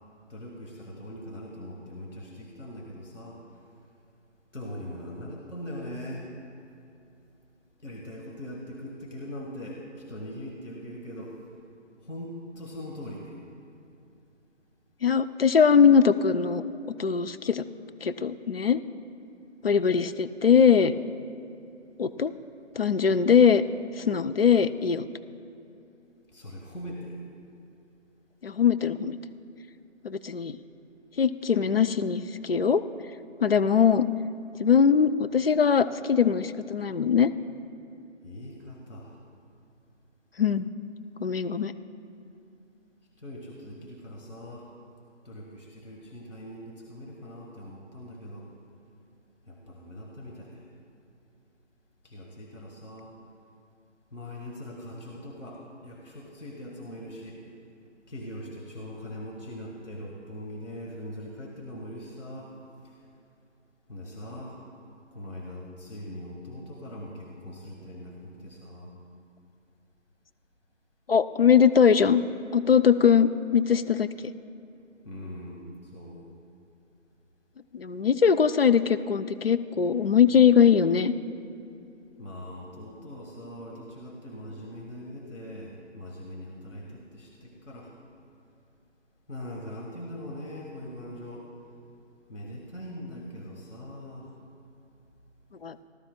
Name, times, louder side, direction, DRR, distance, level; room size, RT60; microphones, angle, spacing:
voice 1, 0.3-3.4 4.5-6.3 7.8-11.4 12.0-13.4 26.3-27.3 38.2-39.2 43.2-44.7 45.3-48.5 49.4-50.7 52.0-53.1 54.1-57.4 58.1-62.5 63.9-64.6 65.1-68.9 75.0-76.3 82.2-87.9 89.3-91.5 92.3-94.3, left 1 dB, 80° left, -2 dB, 1.7 m, -41 dB
voice 2, 15.0-16.6 17.0-17.6 18.0-18.8 19.6-20.9 22.0-22.3 22.8-23.6 24.0-25.1 28.4-29.2 30.0-30.6 31.2-32.8 33.4-34.1 34.6-37.3 40.4-40.7 41.2-41.7 71.1-72.2 72.5-74.1 77.7-81.1 95.6-95.8, left 7 dB, 55° left, 11 dB, 0.5 m, -21 dB
19.0 x 12.0 x 2.3 m, 2.7 s
figure-of-eight pair, 150°, 36 cm